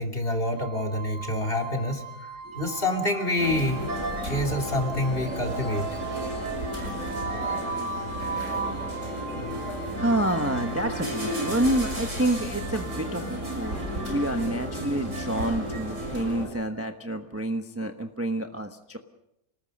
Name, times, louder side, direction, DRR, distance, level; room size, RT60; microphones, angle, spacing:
voice 1, 0.0-2.1 2.5-3.8 4.2-5.9 7.4-7.7, left 1 dB, 40° left, 2 dB, 3.1 m, -27 dB
sound 1, 0.5-15.5, right 4 dB, 35° right, 2.1 m, -38 dB
sound 2, 3.4-16.5, equal, 55° right, 7.1 m, -33 dB
voice 2, 9.9-19.0, right 1 dB, 10° right, 5 dB, 1.0 m, -28 dB
29.5 x 19.5 x 5.4 m, 0.84 s
omnidirectional pair, 1.6 m